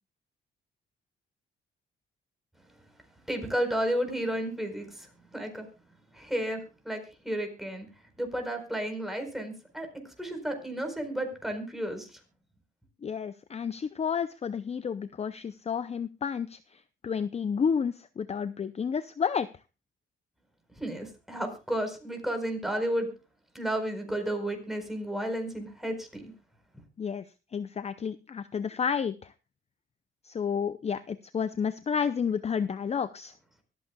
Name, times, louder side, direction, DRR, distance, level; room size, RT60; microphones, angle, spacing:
voice 1, 3.3-5.7 6.1-7.9 8.2-12.2 20.8-23.1 23.5-26.3, right 1 dB, ahead, 5 dB, 4.5 m, -32 dB
voice 2, 13.0-19.5 27.0-27.3 27.5-29.3 30.2-33.3, left 6 dB, 30° left, 13 dB, 0.6 m, -31 dB
24.0 x 8.4 x 2.3 m, 0.30 s
cardioid pair, 90°, 20 cm